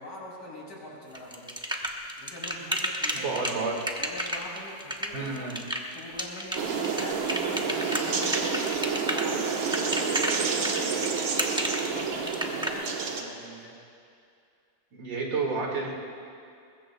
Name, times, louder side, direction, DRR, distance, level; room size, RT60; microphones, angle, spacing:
voice 1, 0.0-1.5 2.2-3.6 4.0-5.5 5.9-11.4 11.9-13.8, left 1 dB, 65° left, -5 dB, 4.6 m, -43 dB
sound 1, 1.1-12.7, equal, 5° right, 0.4 m, -31 dB
voice 2, 3.2-3.7 5.1-5.6 14.9-15.9, right 4 dB, 70° right, -1 dB, 2.8 m, -30 dB
sound 2, 6.6-13.2, right 5 dB, 90° right, 1.9 m, -29 dB
22.5 x 20.5 x 2.3 m, 2.4 s
omnidirectional pair, 2.1 m